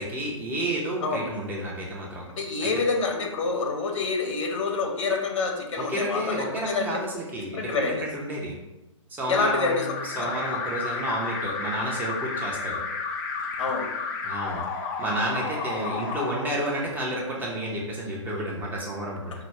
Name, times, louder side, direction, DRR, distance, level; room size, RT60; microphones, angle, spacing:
voice 1, 0.0-2.2 2.6-2.7 5.8-8.5 9.1-12.8 14.2-14.6 15.0-19.3, right 1 dB, 10° right, -4 dB, 0.7 m, -31 dB
voice 2, 2.4-7.0 7.5-8.0 9.3-9.9 10.2-10.3 13.6-13.9, left 4 dB, 70° left, 2 dB, 1.1 m, -27 dB
Alarm, 9.3-17.2, left 4 dB, 35° left, 0.5 m, -32 dB
5.0 x 2.2 x 4.4 m, 0.98 s
hypercardioid pair, 135°, 17 cm